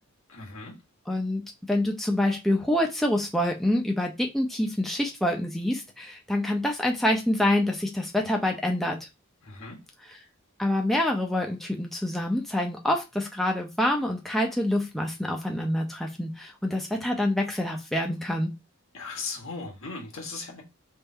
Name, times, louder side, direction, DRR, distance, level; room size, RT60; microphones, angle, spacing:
voice 1, 0.3-0.7 9.4-9.8 18.9-20.6, left 3 dB, 65° left, 1.4 m, -37 dB
voice 2, 1.1-1.4 1.7-9.0 10.0-10.2 10.6-18.5, left 1 dB, ahead, 0.5 m, -26 dB
3.5 x 2.6 x 4.3 m
head